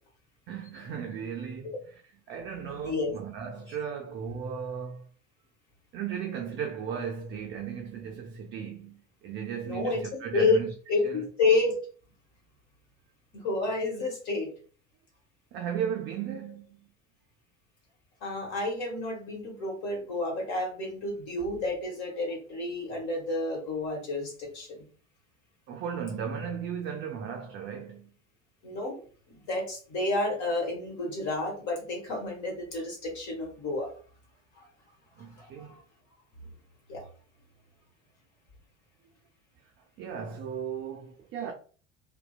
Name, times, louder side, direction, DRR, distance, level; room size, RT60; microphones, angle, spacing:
voice 1, 0.5-2.0 2.3-5.0 5.9-10.7 11.0-11.2 15.5-16.7 25.7-28.1 35.2-35.8 40.0-41.5, right 7 dB, 35° right, 0.4 m, -36 dB
voice 2, 9.6-10.0 10.3-10.6 10.9-11.8 13.3-14.5 18.2-24.8 28.6-29.0 29.5-33.9 34.6-34.7 35.4-35.7 36.9-37.0, left 3 dB, 50° left, 1.1 m, -30 dB
2.7 x 2.1 x 2.2 m
figure-of-eight pair, 65°, 37 cm